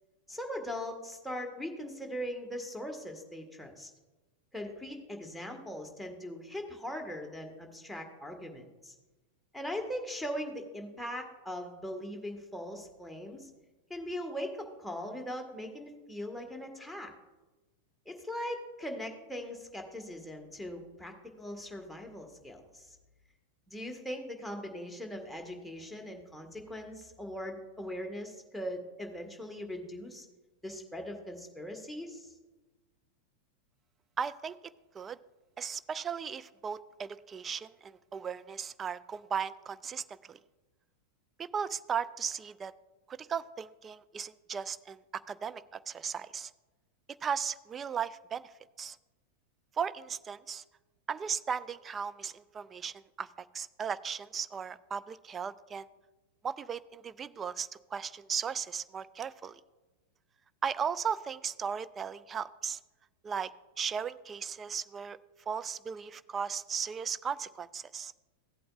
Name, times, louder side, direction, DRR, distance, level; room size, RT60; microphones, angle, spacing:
voice 1, 0.3-3.9 4.5-8.9 9.5-13.5 13.9-17.1 18.0-22.9 23.7-30.3 30.6-32.3, equal, ahead, 2 dB, 1.5 m, -40 dB
voice 2, 34.2-34.5 34.9-35.2 35.6-40.4 41.4-42.7 43.1-45.0 45.3-46.5 47.2-48.5 48.8-49.0 49.8-50.6 51.1-53.3 53.5-55.9 56.4-59.6 60.6-62.8 63.2-63.5 63.8-65.2 65.5-68.1, right 7 dB, 20° right, 16 dB, 0.4 m, -36 dB
16.0 x 8.4 x 2.4 m, 1.2 s
figure-of-eight pair, 90°, 0 cm